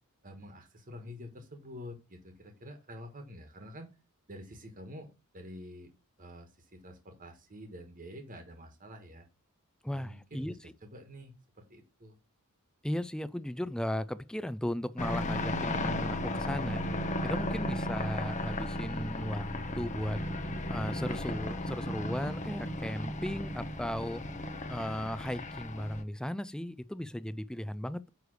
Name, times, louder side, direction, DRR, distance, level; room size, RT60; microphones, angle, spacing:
voice 1, 0.2-3.9 4.3-5.9 6.2-9.3 9.9-10.6 10.8-12.2, equal, 40° right, 1.4 m, -47 dB
voice 2, 9.8-10.5 12.8-20.2 20.7-24.2 24.7-28.1, equal, 5° left, 0.4 m, -36 dB
sound 1, 15.0-26.0, left 1 dB, 35° left, 0.9 m, -35 dB
9.7 x 3.3 x 6.4 m
head